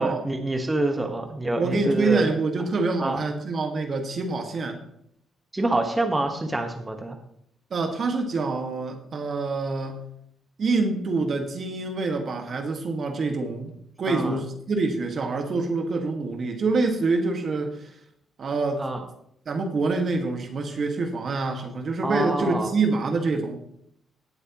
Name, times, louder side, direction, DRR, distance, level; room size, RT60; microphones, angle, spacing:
voice 1, 0.0-2.3 3.0-3.2 5.5-7.2 14.1-14.4 18.8-19.0 22.0-22.7, right 2 dB, 15° right, 4 dB, 1.4 m, -26 dB
voice 2, 1.6-4.8 7.7-10.0 10.6-13.7 14.0-17.9 18.4-18.8 19.5-23.6, right 3 dB, 50° right, 4 dB, 1.8 m, -26 dB
18.0 x 7.8 x 3.1 m, 0.71 s
cardioid pair, 90°, 0 cm